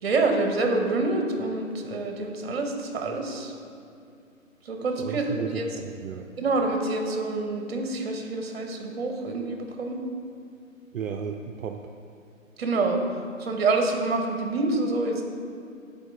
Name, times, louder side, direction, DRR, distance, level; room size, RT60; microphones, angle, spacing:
voice 1, 0.0-3.5 4.6-5.6 6.4-10.0 12.6-13.0 13.4-15.2, right 3 dB, 50° right, 3 dB, 0.9 m, -27 dB
voice 2, 5.0-6.3 10.9-11.8, right 6 dB, 75° right, 4 dB, 0.5 m, -34 dB
8.8 x 4.0 x 3.4 m, 2.4 s
figure-of-eight pair, 135°, 41 cm